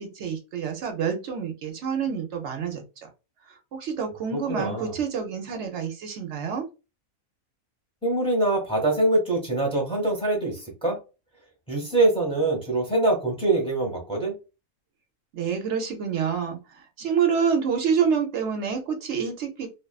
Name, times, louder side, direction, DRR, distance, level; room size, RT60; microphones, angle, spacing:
voice 1, 0.0-3.1 3.7-6.7 15.3-19.7, right 6 dB, 65° right, 0.8 m, -27 dB
voice 2, 4.5-4.9 8.0-11.0 11.7-14.3, right 2 dB, 5° left, 0.7 m, -24 dB
2.5 x 2.3 x 2.3 m
omnidirectional pair, 1.5 m